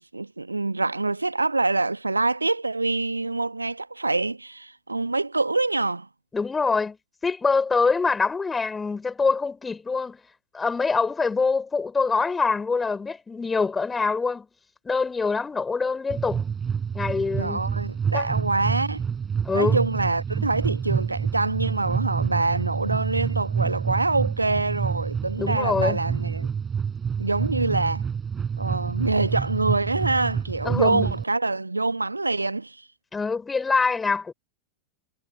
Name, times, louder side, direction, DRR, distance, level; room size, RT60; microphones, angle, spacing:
voice 1, 0.0-6.1 17.4-19.0 19.5-26.5 27.2-28.0 28.6-32.8, right 3 dB, 80° right, 1.4 m, -25 dB
voice 2, 6.3-7.0 7.2-10.2 10.5-14.5 14.8-16.4 16.9-17.6 18.1-18.3 19.4-19.8 25.4-26.0 30.6-31.1 33.1-34.3, left 4 dB, 15° left, 5.6 m, -24 dB
sound 1, 16.1-31.2, right 7 dB, 20° right, 4.8 m, -28 dB
figure-of-eight pair, 90°, 0 cm